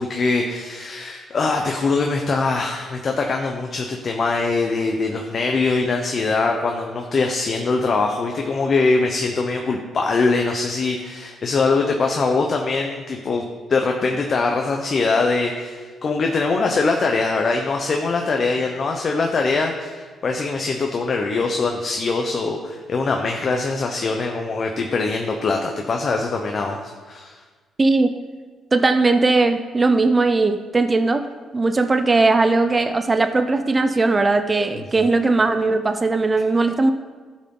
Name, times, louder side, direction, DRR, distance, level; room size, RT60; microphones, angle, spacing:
voice 1, 0.0-13.4 13.7-27.3, left 3 dB, 45° left, 2 dB, 0.9 m, -22 dB
voice 2, 27.8-28.1 28.7-31.2 31.5-36.9, right 3 dB, 25° right, 8 dB, 0.5 m, -18 dB
12.5 x 6.3 x 3.9 m, 1.4 s
cardioid pair, 90°, 0 cm